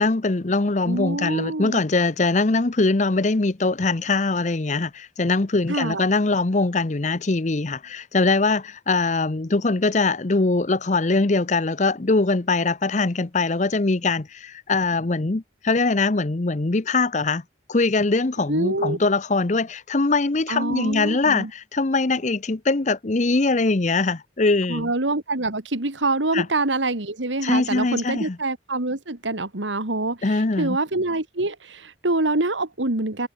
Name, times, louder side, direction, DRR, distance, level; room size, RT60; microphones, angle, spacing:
voice 1, 0.0-17.4 17.7-24.9 26.3-26.5 27.4-28.4 30.2-30.8, left 3 dB, 40° left, 0.8 m, -22 dB
voice 2, 0.8-1.8 5.7-6.0 18.5-19.0 20.5-21.5 24.7-33.3, right 2 dB, 85° right, 2.5 m, -25 dB
head